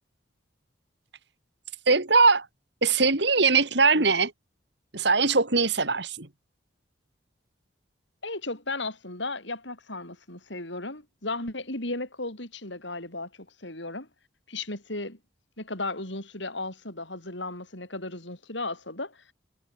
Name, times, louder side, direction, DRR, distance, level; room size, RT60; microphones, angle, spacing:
voice 1, 1.9-2.5 2.8-4.3 4.9-6.3, right 4 dB, 60° right, 2.3 m, -21 dB
voice 2, 8.2-13.3 13.6-14.1 14.5-15.2 15.6-19.2, left 2 dB, 70° left, 7.7 m, -35 dB
head